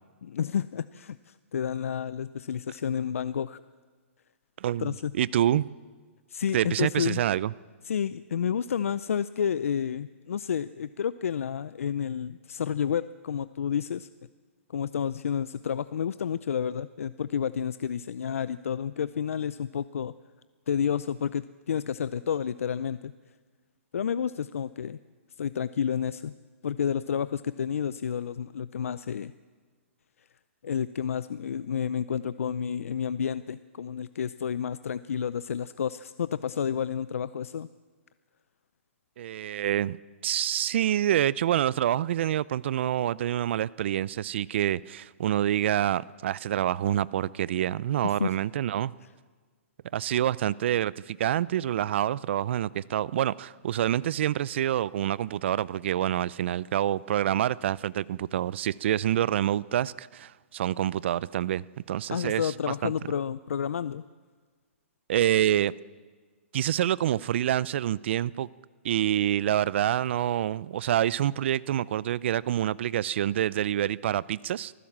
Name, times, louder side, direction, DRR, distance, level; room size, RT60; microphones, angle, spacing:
voice 1, 0.2-3.6 4.8-5.1 6.3-7.2 7.8-14.1 14.7-20.1 20.7-23.1 23.9-25.0 25.4-26.3 26.6-29.3 30.6-37.7 48.0-48.3 62.1-64.0, left 8 dB, 80° left, 15 dB, 0.5 m, -30 dB
voice 2, 4.6-5.7 6.5-7.5 39.2-40.0 40.2-48.9 49.9-62.9 65.1-65.7 66.5-68.5 68.8-74.7, right 11 dB, 55° right, 21 dB, 0.5 m, -27 dB
24.0 x 15.5 x 7.4 m, 1.5 s
hypercardioid pair, 145°, 7 cm